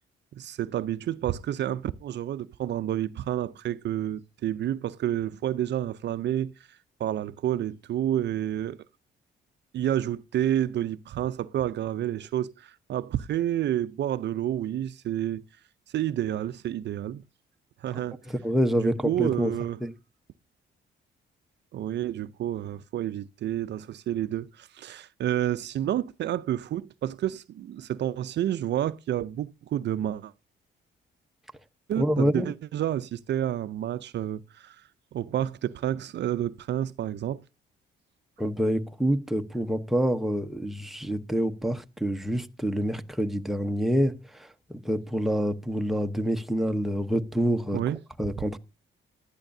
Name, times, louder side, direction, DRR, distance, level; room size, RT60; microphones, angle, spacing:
voice 1, 0.3-8.8 9.7-15.4 15.9-17.2 17.8-18.2 18.8-19.8 21.7-30.3 31.9-37.4 47.7-48.0, right 11 dB, 60° right, 0.5 m, -29 dB
voice 2, 18.3-19.5 19.8-19.9 32.0-32.5 38.4-47.8 48.2-48.6, equal, ahead, 0.9 m, -27 dB
15.5 x 11.5 x 2.7 m
cardioid pair, 90°, 20 cm